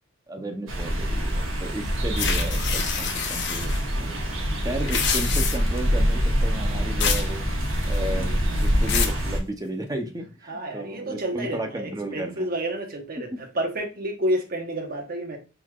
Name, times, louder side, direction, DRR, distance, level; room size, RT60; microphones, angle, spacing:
voice 1, 0.3-4.2 4.6-7.5 7.8-12.5 13.2-13.4, right 1 dB, 20° right, 0.7 m, -34 dB
sound 1, 0.7-9.4, equal, 70° right, 1.2 m, -25 dB
sound 2, 2.2-3.8 4.7-5.8 7.0-7.3 7.6-8.1 8.6-9.2, left 6 dB, 55° left, 0.7 m, -27 dB
voice 2, 3.9-4.4 8.1-8.5 10.5-13.3 13.5-15.4, right 1 dB, 45° right, 1.1 m, -30 dB
4.6 x 3.9 x 2.3 m
head